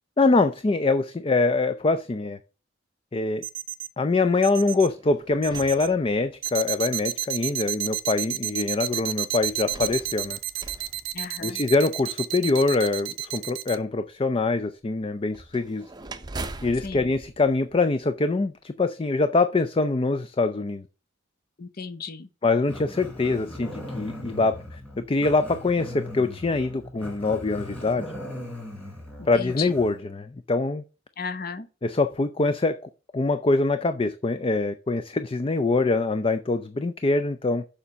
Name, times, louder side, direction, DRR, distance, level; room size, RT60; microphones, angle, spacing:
voice 1, 0.2-2.4 3.1-3.4 4.0-10.4 11.4-15.8 16.6-20.8 22.4-28.1 29.2-30.8 31.8-32.8 33.1-37.6, left 3 dB, 25° left, 0.4 m, -24 dB
sound 1, 3.4-3.9 4.4-4.9 5.4-5.9 6.4-13.8, right 13 dB, 80° right, 0.6 m, -30 dB
sound 2, 4.6-6.6 7.4-7.5 9.3-11.9 15.3-18.4, right 2 dB, 20° right, 0.6 m, -42 dB
voice 2, 11.1-11.6 16.8-17.1 21.6-22.3 29.2-29.7 31.2-31.7, left 5 dB, 50° left, 0.8 m, -35 dB
Growling, 22.7-30.0, left 1 dB, 5° left, 4.0 m, -39 dB
7.1 x 5.1 x 5.3 m
head